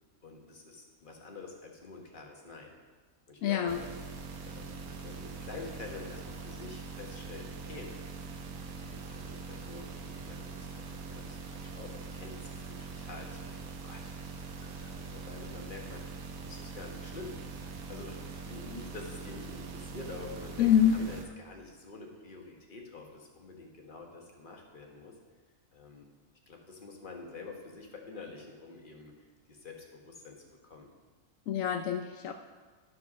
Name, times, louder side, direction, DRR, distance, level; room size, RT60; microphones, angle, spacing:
voice 1, 0.2-2.8 3.3-3.9 4.5-7.9 8.8-16.1 16.4-17.4 17.9-25.1 25.7-26.1 26.5-30.9, left 3 dB, 40° left, 1 dB, 1.4 m, -47 dB
voice 2, 3.4-3.8 20.6-21.1 31.5-32.3, left 9 dB, 80° left, 5 dB, 1.0 m, -26 dB
sound 1, 3.7-21.2, right 4 dB, 85° right, 1.3 m, -43 dB
12.0 x 4.6 x 6.0 m, 1.4 s
omnidirectional pair, 1.4 m